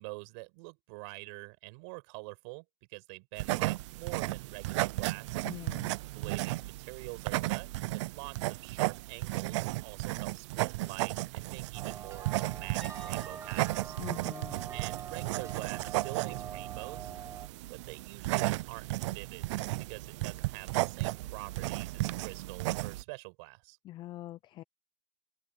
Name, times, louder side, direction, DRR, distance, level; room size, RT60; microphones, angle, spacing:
voice 1, 0.0-5.4 6.1-14.0 14.7-17.1 17.7-19.5 19.9-23.8, right 32 dB, 60° right, 5.6 m, -46 dB
sound 1, 3.4-23.0, right 19 dB, 80° right, 0.6 m, -34 dB
voice 2, 5.4-5.9 14.0-14.7 23.8-24.6, left 15 dB, 30° left, 0.6 m, -44 dB
sound 2, 11.7-17.5, right 8 dB, 20° right, 1.2 m, -44 dB
sound 3, 12.8-16.6 16.9-17.2 20.1-20.2, left 2 dB, 5° left, 2.5 m, -59 dB
open air
supercardioid pair, 155°, 15 cm